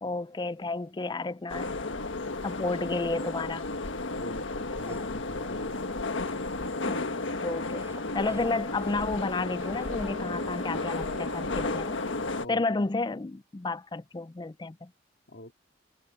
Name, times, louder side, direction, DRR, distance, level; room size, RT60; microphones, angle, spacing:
voice 1, 0.0-1.8 2.4-3.6 6.9-7.9 8.1-12.0 12.5-14.9, left 3 dB, 25° left, 0.4 m, -32 dB
sound 1, 1.5-12.5, left 2 dB, 90° left, 1.5 m, -33 dB
voice 2, 4.1-5.8 11.3-11.9 12.3-12.6 15.3-15.5, left 1 dB, 60° left, 2.5 m, -43 dB
sound 2, 4.7-10.1, right 2 dB, 15° right, 7.3 m, -52 dB
Wind instrument woodwind instrument, 9.6-12.5, right 2 dB, 35° right, 7.7 m, -47 dB
head